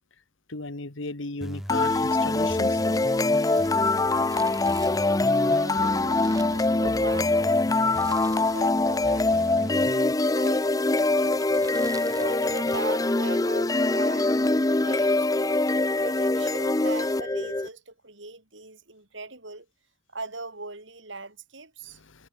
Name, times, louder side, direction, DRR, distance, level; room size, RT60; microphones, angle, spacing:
voice 1, 0.5-2.8 22.1-22.3, left 3 dB, 70° left, 1.7 m, -35 dB
sound 1, 1.4-10.1, equal, ahead, 1.3 m, -39 dB
sound 2, 1.7-17.7, left 2 dB, 15° left, 0.6 m, -23 dB
Crumpling crinkling, 3.2-7.2 7.9-8.9 9.2-9.3 10.1-10.4 11.1-13.0 13.3-13.4, right 4 dB, 20° right, 2.8 m, -47 dB
voice 2, 5.4-11.4 12.0-14.3 14.8-15.7 16.0-19.7 20.1-22.0, right 3 dB, 60° right, 7.4 m, -40 dB
head